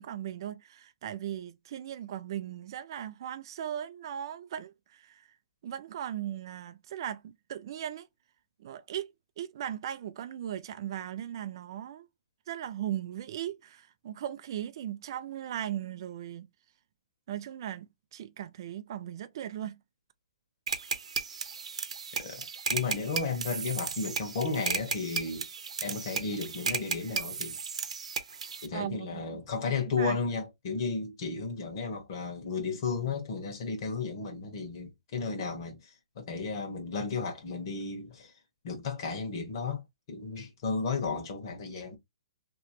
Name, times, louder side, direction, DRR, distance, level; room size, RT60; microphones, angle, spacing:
voice 1, 0.0-5.3 5.6-8.1 8.6-12.1 12.5-16.5 17.3-19.7 28.7-29.4 30.0-30.2, right 10 dB, 45° right, 0.4 m, -38 dB
sound 1, 20.7-28.7, right 5 dB, 80° right, 0.7 m, -34 dB
voice 2, 22.7-25.5 25.8-27.6 28.6-38.3 38.6-42.0, left 4 dB, 45° left, 1.3 m, -34 dB
3.1 x 2.9 x 3.0 m
hypercardioid pair, 160°, 3 cm